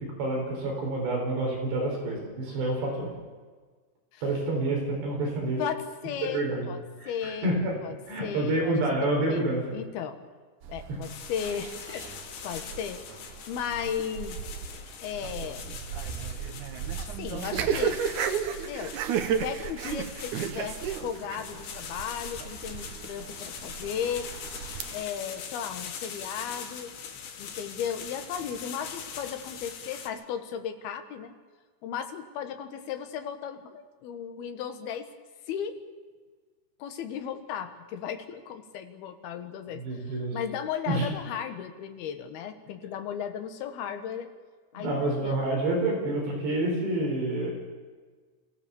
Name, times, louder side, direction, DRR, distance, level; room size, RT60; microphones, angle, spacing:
voice 1, 0.2-3.1 4.2-5.6 6.3-6.7 7.0-7.7 8.1-9.6 39.8-40.3 40.9-41.1 44.7-47.5, right 2 dB, 70° right, 0 dB, 6.4 m, -28 dB
voice 2, 5.6-7.5 7.8-9.4 9.7-10.3 10.7-13.0 13.5-14.4 15.0-15.8 17.2-18.0 18.6-19.0 19.4-24.3 24.9-27.0 27.4-31.3 31.8-35.1 35.5-35.8 36.8-44.3 44.7-45.4, left 8 dB, 70° left, 7 dB, 3.0 m, -35 dB
sound 1, 10.6-25.0, right 8 dB, 90° right, 1.7 m, -34 dB
sound 2, 11.0-30.1, left 7 dB, 85° left, 4.3 m, -42 dB
28.0 x 16.5 x 7.1 m, 1.5 s
omnidirectional pair, 5.1 m